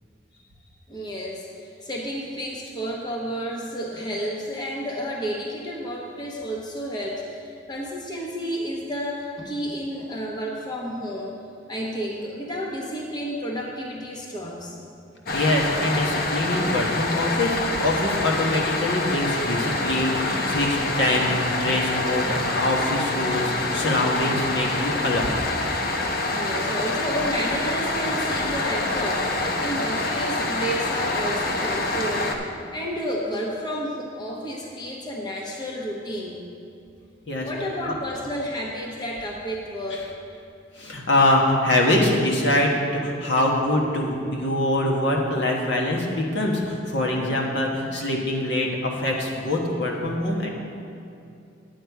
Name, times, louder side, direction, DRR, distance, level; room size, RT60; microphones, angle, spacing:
voice 1, 0.9-11.4 11.7-14.8 26.3-32.4 32.7-36.4 37.4-40.1, equal, 20° left, -2 dB, 0.9 m, -31 dB
voice 2, 15.3-25.3 37.3-37.5 37.8-38.0 39.9-40.0 40.8-50.5, left 1 dB, 65° left, -1 dB, 1.3 m, -24 dB
sound 1, 15.3-32.3, left 2 dB, 50° left, 0.8 m, -26 dB
9.9 x 8.7 x 4.7 m, 2.5 s
head